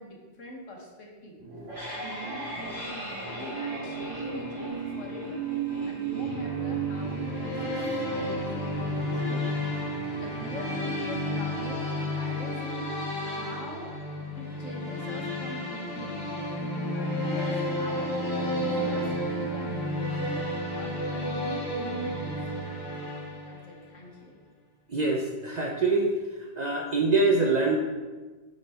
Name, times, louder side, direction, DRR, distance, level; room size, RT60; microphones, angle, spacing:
voice 1, 0.0-1.4 1.9-5.4 5.8-9.5 10.2-12.9 13.3-14.0 14.3-16.2 16.5-20.4 20.7-22.4 23.4-24.4, left 1 dB, 75° left, -1 dB, 1.6 m, -43 dB
sound 1, 1.4-12.4, right 5 dB, 25° right, 2.2 m, -36 dB
sound 2, 6.1-23.8, left 1 dB, 55° left, 1.4 m, -32 dB
voice 2, 24.9-26.1 26.6-27.8, right 3 dB, 45° right, 1 dB, 0.6 m, -24 dB
6.4 x 5.2 x 4.3 m, 1.3 s
omnidirectional pair, 1.3 m